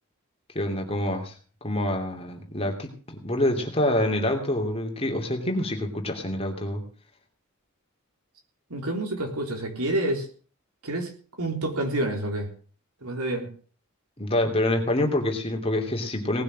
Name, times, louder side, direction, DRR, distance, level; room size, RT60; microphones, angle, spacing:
voice 1, 0.5-1.3 1.6-6.8 14.2-16.4, left 1 dB, 25° left, 3 dB, 2.8 m, -26 dB
voice 2, 8.7-10.3 10.8-11.1 11.4-12.5 13.0-13.5, right 1 dB, 85° right, 3 dB, 3.8 m, -28 dB
19.0 x 6.9 x 7.4 m, 0.41 s
head